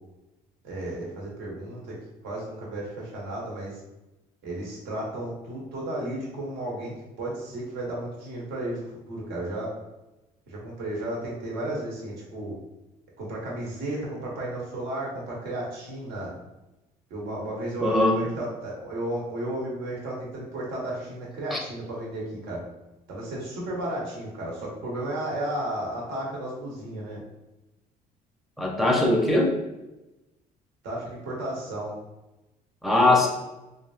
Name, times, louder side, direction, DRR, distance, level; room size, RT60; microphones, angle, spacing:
voice 1, 0.6-2.0 2.2-3.8 4.4-9.7 10.5-12.5 13.2-16.3 17.1-22.6 23.1-27.2 30.8-32.0, right 1 dB, 80° right, -3 dB, 1.2 m, -33 dB
voice 2, 17.8-18.2 21.5-21.6 28.6-29.6 32.8-33.3, left 2 dB, ahead, -1 dB, 0.6 m, -21 dB
3.2 x 2.6 x 2.4 m, 0.99 s
cardioid pair, 110°, 17 cm